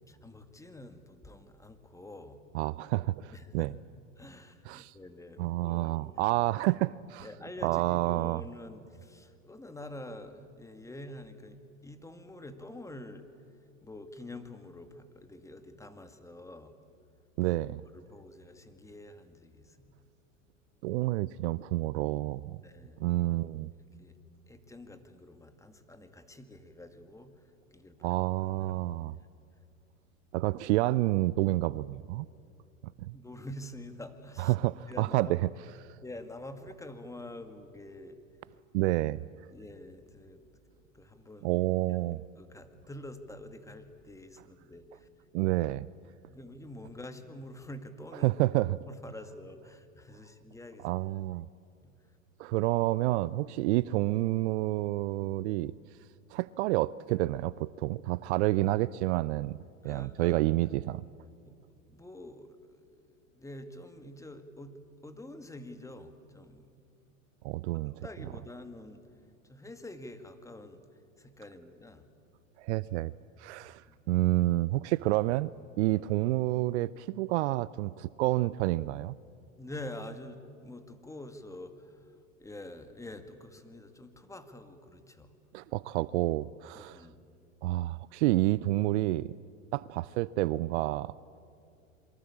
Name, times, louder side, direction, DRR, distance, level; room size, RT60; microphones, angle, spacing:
voice 1, 0.1-2.4 3.3-3.7 4.2-6.1 7.2-13.3 13.8-16.7 17.4-17.6 17.9-20.0 22.6-23.5 24.0-24.2 24.5-27.3 27.7-28.2 28.4-28.8 33.1-34.5 34.9-35.3 36.0-38.2 39.5-40.5 40.9-41.6 42.0-45.1 45.4-45.5 46.3-48.3 48.9-51.0 51.8-51.9 59.8-60.4 60.7-60.9 61.4-61.5 61.9-62.8 63.4-64.8 65.0-66.7 67.9-69.0 69.5-70.8 71.2-72.1 73.9-74.0 79.6-82.1 82.4-85.3 86.7-87.2, left 1 dB, 5° left, 8 dB, 2.1 m, -47 dB
voice 2, 2.5-3.7 4.7-4.9 5.4-7.3 7.6-8.4 17.4-17.8 20.8-22.6 23.0-23.7 28.0-29.2 30.3-32.3 33.1-33.2 34.4-35.5 38.7-39.2 41.4-42.2 45.3-45.9 48.2-48.8 50.8-51.5 52.4-55.7 56.3-59.6 59.8-61.0 67.4-67.9 72.6-73.1 73.4-75.5 75.8-79.1 85.5-87.0 87.6-89.4 89.7-91.1, right 18 dB, 55° right, 19 dB, 0.6 m, -29 dB
27.0 x 23.5 x 8.6 m, 2.4 s
hypercardioid pair, 105°, 40 cm